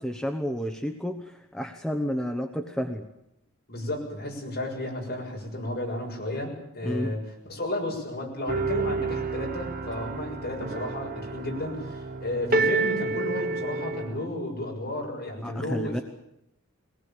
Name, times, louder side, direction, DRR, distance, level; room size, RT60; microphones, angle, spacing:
voice 1, 0.0-3.0 6.8-7.2 15.4-16.0, equal, 5° left, 4 dB, 1.1 m, -31 dB
voice 2, 3.7-16.0, left 1 dB, 50° left, 0 dB, 6.9 m, -33 dB
sound 1, 8.5-14.3, right 3 dB, 40° right, 1.2 m, -29 dB
22.5 x 19.0 x 8.9 m, 0.85 s
head